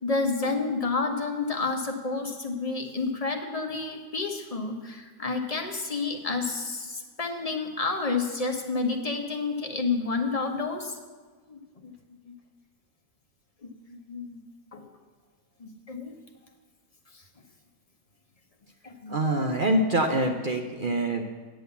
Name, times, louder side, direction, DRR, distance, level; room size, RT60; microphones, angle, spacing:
voice 1, 0.0-11.0 11.5-11.9 12.3-12.4 13.6-14.4 14.7-14.9 15.6-16.2 17.1-17.2 18.8-19.2, left 3 dB, 30° left, 3 dB, 0.9 m, -30 dB
voice 2, 19.1-21.2, right 1 dB, 50° right, 3 dB, 0.6 m, -25 dB
9.4 x 7.8 x 6.9 m, 1.5 s
omnidirectional pair, 1.7 m